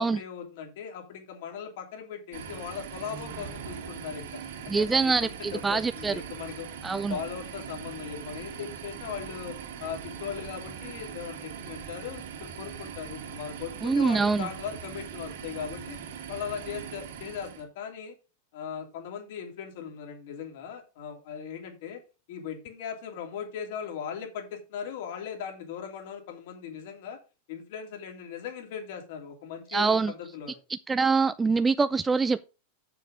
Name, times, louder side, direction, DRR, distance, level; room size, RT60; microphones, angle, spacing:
voice 1, 0.0-6.7 7.0-16.0 16.3-18.1 18.5-22.0 22.3-27.2 27.5-30.6, left 7 dB, 60° left, 2.9 m, -39 dB
sound 1, 2.3-17.6, right 7 dB, 80° right, 2.4 m, -41 dB
voice 2, 4.7-6.1 6.8-7.2 13.8-14.5 29.7-30.1 30.7-32.4, right 4 dB, 10° right, 0.3 m, -25 dB
7.2 x 6.9 x 5.0 m
supercardioid pair, 155°, 0 cm